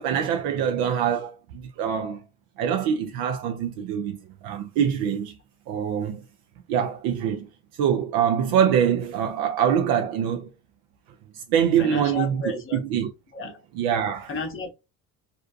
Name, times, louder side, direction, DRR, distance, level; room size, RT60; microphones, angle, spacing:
voice 1, 0.0-2.2 2.6-5.4 5.7-6.2 6.7-7.5 7.8-10.5 11.3-12.4 12.7-13.1 13.8-14.3, right 8 dB, 60° right, 0.5 m, -24 dB
voice 2, 11.8-12.8 13.3-13.6 14.3-14.7, left 4 dB, 30° left, 0.8 m, -32 dB
2.6 x 2.2 x 2.4 m
hypercardioid pair, 75°, 42 cm